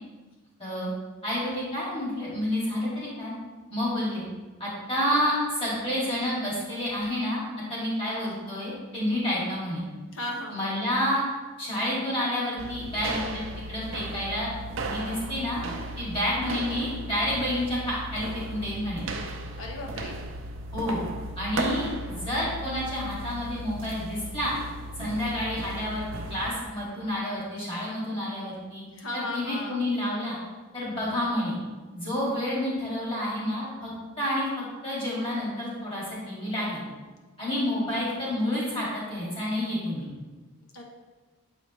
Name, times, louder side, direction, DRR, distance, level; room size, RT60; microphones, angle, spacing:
voice 1, 1.2-3.3 3.7-4.2 4.6-7.4 7.7-9.8 10.5-11.2 11.6-13.4 13.7-14.5 14.8-15.6 16.0-19.0 20.7-21.0 21.4-24.5 25.0-28.8 29.1-30.4 30.7-31.5 31.9-33.9 34.2-34.5 34.8-36.8 37.4-40.0, left 1 dB, 25° left, -7 dB, 2.1 m, -29 dB
voice 2, 10.1-10.6 19.6-20.2 28.9-29.8 40.7-40.8, left 2 dB, 70° left, 0 dB, 0.9 m, -35 dB
sound 1, 12.6-26.5, right 2 dB, 65° right, 0.6 m, -36 dB
7.4 x 5.0 x 3.1 m, 1.3 s
head